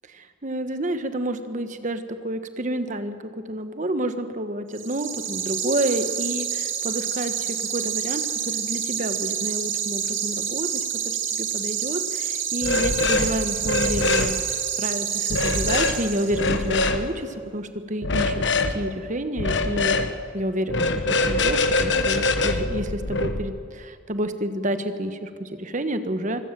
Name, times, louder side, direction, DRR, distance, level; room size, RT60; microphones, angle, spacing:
voice 1, 0.1-20.1 20.3-26.5, right 1 dB, 40° right, 9 dB, 1.2 m, -29 dB
sound 1, 4.7-16.6, right 8 dB, 70° right, 2.9 m, -28 dB
sound 2, 12.6-13.3 13.6-14.3 15.3-15.9 16.3-17.0 18.0-18.7 19.4-20.1 20.7-23.4, left 2 dB, 60° left, 1.3 m, -23 dB
24.5 x 15.5 x 7.4 m, 2.3 s
head